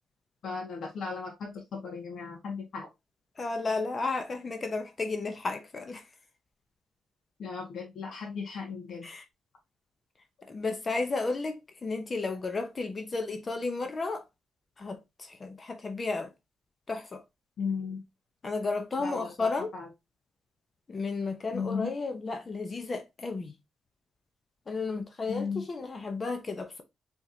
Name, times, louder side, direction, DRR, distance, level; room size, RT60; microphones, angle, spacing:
voice 1, 0.4-2.9 7.4-9.1 17.6-18.0 19.0-19.9 21.5-21.9 25.3-25.6, left 5 dB, 60° left, 1.6 m, -36 dB
voice 2, 3.4-6.0 9.0-9.2 10.5-14.2 14.8-16.3 16.9-17.2 18.4-19.7 20.9-23.5 24.7-26.8, left 3 dB, 35° left, 0.7 m, -33 dB
4.5 x 3.6 x 2.7 m
cardioid pair, 95°, 0 cm